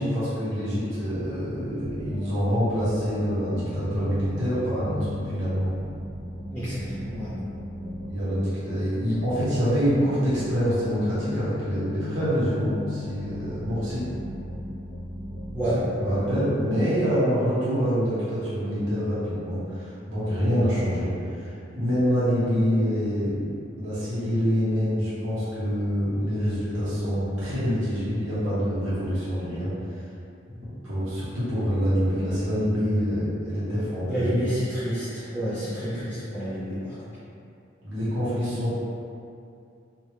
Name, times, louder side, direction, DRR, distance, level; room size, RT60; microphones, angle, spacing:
voice 1, 0.0-5.7 8.1-14.0 16.0-23.5 23.7-29.7 30.5-34.3 37.8-38.8, equal, 90° right, -11 dB, 1.2 m, -26 dB
sound 1, 1.8-16.5, left 1 dB, 40° left, 1.3 m, -37 dB
voice 2, 6.5-7.3 15.5-16.2 34.1-36.9, equal, 10° left, -15 dB, 0.6 m, -29 dB
3.0 x 2.7 x 3.2 m, 2.5 s
head